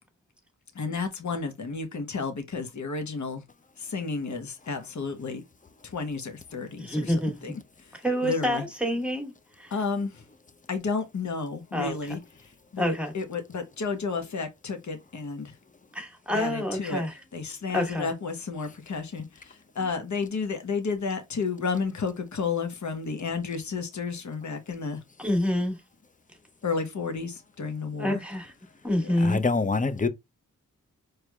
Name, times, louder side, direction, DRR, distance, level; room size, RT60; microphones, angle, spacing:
voice 1, 0.8-3.4 3.9-5.4 5.9-6.7 7.4-7.5 8.2-8.6 9.7-10.1 10.7-12.2 12.7-15.5 16.3-17.0 17.3-19.2 19.8-25.0 26.6-27.3 27.6-28.2, left 4 dB, 60° left, 1.0 m, -31 dB
voice 2, 6.8-7.5 7.9-9.7 11.7-12.1 12.8-13.1 15.9-17.2 17.7-18.1 25.2-25.8 28.0-28.5 28.8-29.4, equal, 5° right, 1.5 m, -28 dB
voice 3, 29.2-30.1, left 4 dB, 25° left, 0.7 m, -25 dB
4.5 x 3.3 x 2.3 m
cardioid pair, 45°, 33 cm